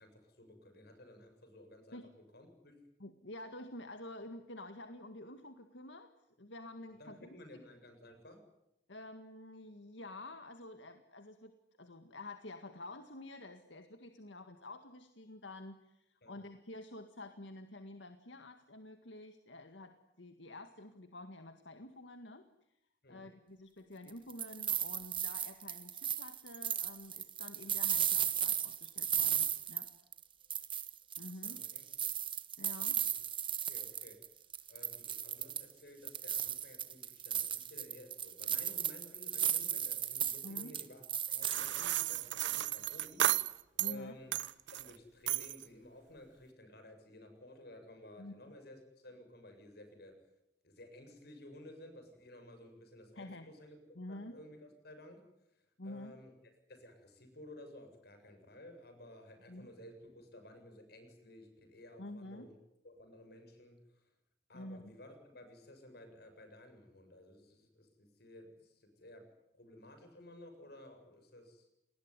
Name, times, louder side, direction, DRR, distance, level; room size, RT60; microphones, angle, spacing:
voice 1, 0.0-2.8 6.9-8.4 16.2-16.4 23.0-23.3 31.4-31.8 33.0-33.1 33.6-34.2 34.7-44.3 44.7-50.2 50.6-53.8 54.1-55.2 55.6-56.3 56.7-62.6 62.8-64.1 64.5-69.3 69.5-71.7, left 1 dB, 60° left, 7 dB, 7.6 m, -55 dB
voice 2, 3.0-6.1 6.4-7.4 8.9-22.4 23.1-29.9 31.2-31.6 32.6-33.0 40.4-40.8 43.8-44.1 48.2-48.4 53.2-53.5 54.0-54.4 55.8-56.2 59.5-59.7 62.0-62.5 64.5-64.9, left 2 dB, 85° left, 7 dB, 1.9 m, -49 dB
sound 1, 24.1-30.2 30.5-34.3 34.5-35.7 36.1-42.2, right 9 dB, 30° right, 1.5 m, -35 dB
sound 2, 41.4-44.0 44.3-44.9 45.3-45.6, right 12 dB, 85° right, 1.0 m, -34 dB
29.0 x 20.5 x 9.8 m, 0.86 s
head